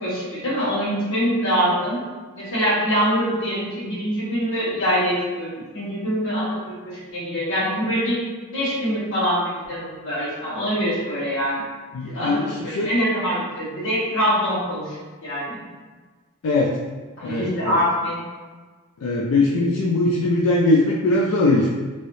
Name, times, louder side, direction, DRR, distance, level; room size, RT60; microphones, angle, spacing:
voice 1, 0.0-2.0 2.4-8.2 8.5-11.6 12.1-15.0 15.2-15.6 17.2-18.2, equal, 60° left, -8 dB, 1.4 m, -24 dB
voice 2, 11.9-12.9 16.4-16.8 17.2-17.8 19.0-21.7, left 2 dB, 80° left, -2 dB, 0.4 m, -20 dB
3.0 x 2.7 x 3.1 m, 1.4 s
head